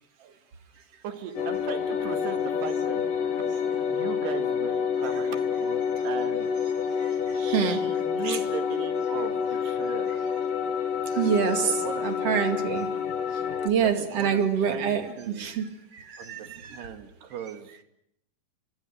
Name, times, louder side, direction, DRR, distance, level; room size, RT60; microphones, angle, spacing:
voice 1, 1.0-3.0 3.8-6.5 7.3-10.1 11.5-12.2 13.8-15.5 16.2-17.7, right 7 dB, 75° right, 7 dB, 4.0 m, -38 dB
sound 1, 1.4-13.7, left 7 dB, 55° left, 3.2 m, -28 dB
voice 2, 7.0-7.9 8.2-8.4 11.1-11.7 12.0-12.9 13.6-16.9, right 7 dB, 40° right, 7 dB, 2.8 m, -27 dB
30.0 x 25.0 x 6.6 m, 0.72 s
omnidirectional pair, 4.9 m